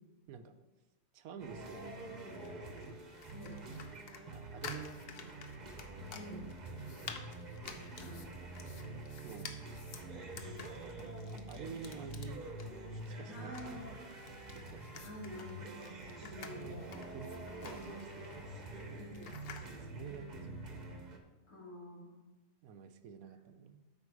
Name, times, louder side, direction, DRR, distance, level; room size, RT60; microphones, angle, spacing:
voice 1, 0.3-0.6 1.1-2.7 3.9-5.4 6.9-7.0 8.4-8.7 9.2-9.5 10.1-12.5 13.1-13.5 14.5-14.9 16.5-18.4 19.8-20.9 22.6-23.8, right 6 dB, 90° right, 10 dB, 1.2 m, -50 dB
sound 1, 1.4-21.2, right 2 dB, 35° right, 1.0 m, -46 dB
sound 2, 2.2-19.7, left 6 dB, 50° left, 0.9 m, -52 dB
voice 2, 6.1-6.5 8.0-8.3 10.3-10.6 13.3-13.8 15.0-16.9 18.9-19.4 21.5-22.3, left 1 dB, 80° left, -4 dB, 3.1 m, -49 dB
12.0 x 5.4 x 4.8 m, 1.1 s
omnidirectional pair, 1.5 m